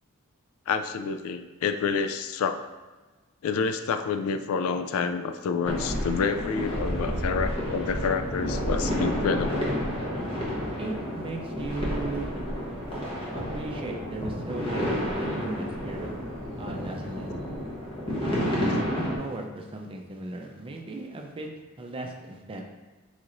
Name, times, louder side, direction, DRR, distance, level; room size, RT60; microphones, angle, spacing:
voice 1, 0.7-2.6 3.4-9.7, left 5 dB, 65° left, 8 dB, 0.3 m, -28 dB
sound 1, 5.6-19.2, equal, 25° left, 1.0 m, -30 dB
voice 2, 10.8-12.3 13.5-16.1 16.6-17.3 18.2-21.5 21.8-22.6, right 2 dB, 25° right, 2 dB, 0.5 m, -37 dB
4.6 x 4.0 x 2.5 m, 1.2 s
head